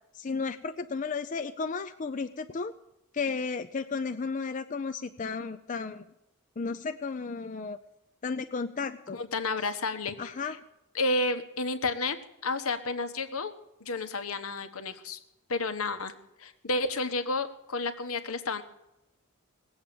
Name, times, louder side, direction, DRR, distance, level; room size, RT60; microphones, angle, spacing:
voice 1, 0.1-2.7 3.1-6.0 6.6-7.8 8.2-9.2 10.2-10.6, left 4 dB, 35° left, 8 dB, 0.4 m, -33 dB
voice 2, 9.1-10.3 10.9-12.2 12.4-13.5 13.8-15.2 15.5-16.1 16.4-18.6, left 3 dB, 75° left, 9 dB, 1.3 m, -31 dB
19.5 x 7.9 x 7.0 m, 0.90 s
head